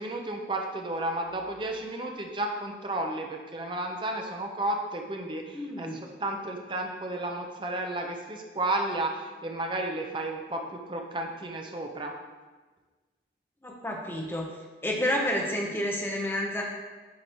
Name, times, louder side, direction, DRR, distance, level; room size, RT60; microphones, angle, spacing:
voice 1, 0.0-12.1, right 1 dB, 30° right, 2 dB, 0.7 m, -32 dB
voice 2, 5.5-6.0 13.6-14.5 14.8-16.6, left 1 dB, 15° left, -1 dB, 0.9 m, -30 dB
9.3 x 3.2 x 4.4 m, 1.3 s
head